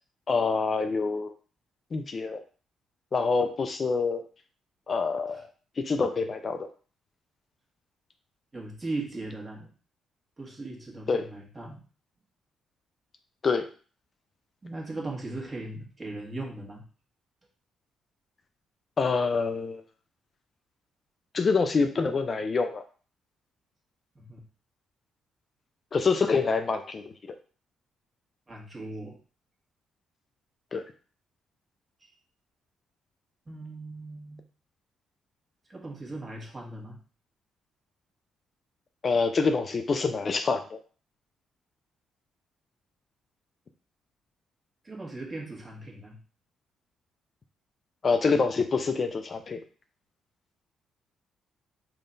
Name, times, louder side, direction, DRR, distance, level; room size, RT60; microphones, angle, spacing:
voice 1, 0.3-1.3 1.9-2.4 3.1-4.2 4.9-5.5 5.8-6.7 11.1-11.3 13.4-13.7 19.0-19.8 21.3-22.8 25.9-27.1 30.7-30.8 39.0-40.8 48.0-49.6, left 4 dB, 40° left, 7 dB, 0.3 m, -26 dB
voice 2, 8.5-9.7 10.4-11.8 14.6-16.8 24.1-24.4 28.5-29.2 32.0-32.1 33.5-34.4 35.7-37.0 44.8-46.2, right 2 dB, 25° right, -2 dB, 1.2 m, -38 dB
3.5 x 2.2 x 3.9 m, 0.39 s
cardioid pair, 90°, 0 cm